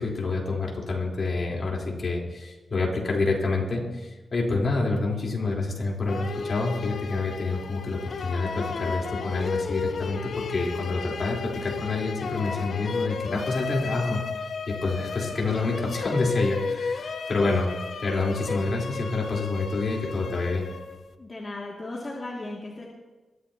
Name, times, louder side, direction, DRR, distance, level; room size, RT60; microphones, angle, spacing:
voice 1, 0.0-14.2 14.7-17.7 18.0-20.7, left 3 dB, 50° left, -2 dB, 3.7 m, -27 dB
sound 1, 6.1-21.1, left 5 dB, 65° left, 0.9 m, -33 dB
voice 2, 21.2-22.8, left 2 dB, 30° left, -4 dB, 2.3 m, -36 dB
22.0 x 14.0 x 2.9 m, 1.2 s
wide cardioid pair, 115°, 0 cm